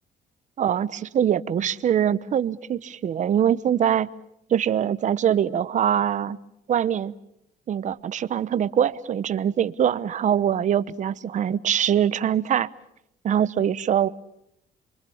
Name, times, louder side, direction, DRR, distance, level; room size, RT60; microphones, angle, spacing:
voice 1, 0.6-4.1 4.5-6.4 6.7-7.1 7.7-12.7 13.2-14.1, right 9 dB, 45° right, 1.0 m, -23 dB
27.0 x 24.0 x 7.1 m
cardioid pair, 110°, 17 cm